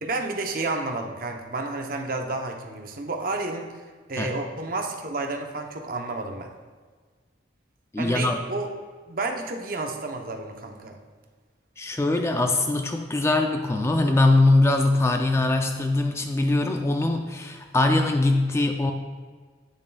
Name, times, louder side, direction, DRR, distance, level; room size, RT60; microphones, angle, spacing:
voice 1, 0.0-6.5 8.0-8.7 9.1-11.0, right 2 dB, 50° right, 3 dB, 0.7 m, -31 dB
voice 2, 7.9-8.4 11.8-18.9, left 2 dB, 15° left, 4 dB, 0.3 m, -22 dB
9.1 x 8.6 x 2.3 m, 1.5 s
head